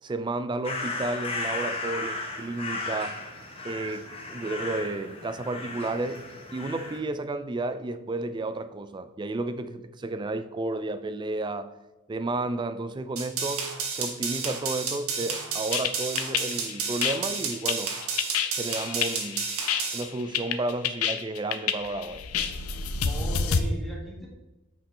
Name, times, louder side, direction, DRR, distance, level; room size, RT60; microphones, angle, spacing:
voice 1, 0.0-3.2 3.6-6.3 6.5-11.7 12.1-18.0 18.6-19.5 19.9-22.3, right 2 dB, 20° right, 0.3 m, -32 dB
sound 1, 0.6-7.0, left 3 dB, 25° left, 1.1 m, -35 dB
sound 2, 13.2-20.0, right 5 dB, 85° right, 1.3 m, -31 dB
sound 3, 15.7-23.6, left 6 dB, 85° left, 0.6 m, -29 dB
voice 2, 22.7-24.3, right 1 dB, ahead, 1.5 m, -40 dB
8.6 x 5.1 x 3.3 m
head